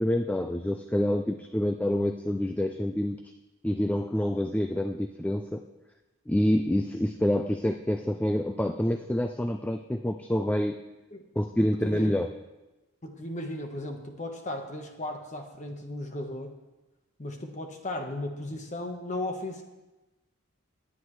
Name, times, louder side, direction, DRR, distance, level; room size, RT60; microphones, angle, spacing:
voice 1, 0.0-3.2 3.6-5.6 6.3-10.8 11.4-12.3, left 1 dB, 5° left, 5 dB, 0.3 m, -27 dB
voice 2, 11.6-12.2 13.0-16.5 17.2-19.6, left 1 dB, 35° left, 4 dB, 1.2 m, -36 dB
17.5 x 10.0 x 3.2 m, 1.1 s
head